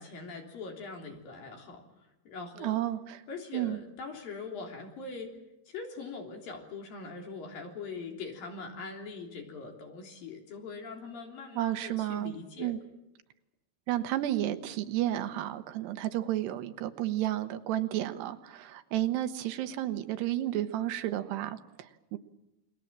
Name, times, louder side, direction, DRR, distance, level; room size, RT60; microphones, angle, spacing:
voice 1, 0.0-1.8 2.2-2.8 3.3-5.3 5.7-12.7, left 4 dB, 60° left, 2 dB, 5.0 m, -42 dB
voice 2, 2.6-3.2 3.5-3.8 11.6-12.8 13.9-22.2, right 13 dB, 85° right, 9 dB, 3.2 m, -32 dB
29.0 x 22.0 x 7.5 m, 0.92 s
omnidirectional pair, 4.7 m